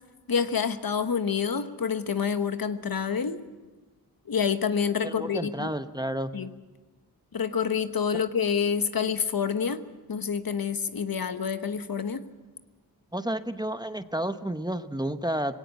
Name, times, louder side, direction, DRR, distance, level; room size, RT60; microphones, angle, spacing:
voice 1, 0.3-3.4 4.3-5.7 6.3-6.5 7.3-9.8 10.1-12.2, left 6 dB, 65° left, 10 dB, 1.2 m, -27 dB
voice 2, 5.0-6.3 13.1-15.5, right 1 dB, 10° right, 10 dB, 0.9 m, -31 dB
20.0 x 17.5 x 8.5 m, 1.3 s
wide cardioid pair, 60°, 38 cm